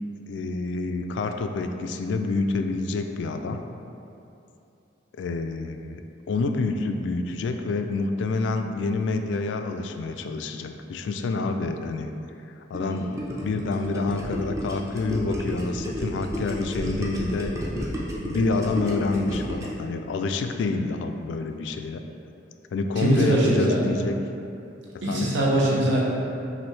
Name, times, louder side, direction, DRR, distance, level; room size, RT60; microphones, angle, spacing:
voice 1, 0.1-3.6 5.2-6.0 6.3-12.1 12.7-17.6 18.1-22.0 22.7-24.2 25.1-25.4, left 3 dB, 75° left, 6 dB, 0.3 m, -28 dB
Gurgling, 12.7-19.8, equal, 15° right, 0.5 m, -32 dB
voice 2, 23.0-23.8 25.0-26.0, right 1 dB, 80° right, -4 dB, 0.9 m, -21 dB
6.0 x 2.6 x 3.2 m, 2.7 s
head